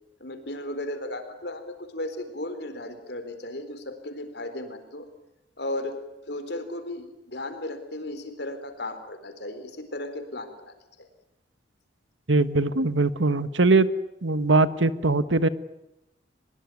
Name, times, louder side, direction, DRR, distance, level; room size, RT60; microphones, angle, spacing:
voice 1, 0.2-5.1 5.6-6.0 6.3-10.7, left 1 dB, 60° left, 9 dB, 4.1 m, -35 dB
voice 2, 12.3-13.9 14.2-15.5, right 3 dB, 80° right, 14 dB, 1.4 m, -21 dB
23.5 x 21.5 x 9.4 m, 0.87 s
head